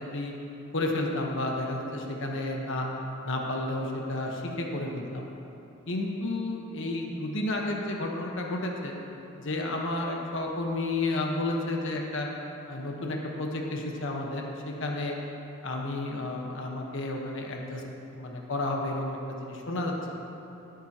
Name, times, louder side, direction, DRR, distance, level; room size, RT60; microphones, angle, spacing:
voice 1, 0.7-2.9 3.2-5.3 5.9-8.9 9.4-12.3 12.7-15.1 15.6-17.8 18.1-20.3, left 2 dB, 65° left, 0 dB, 1.3 m, -31 dB
17.5 x 9.0 x 3.0 m, 2.9 s
head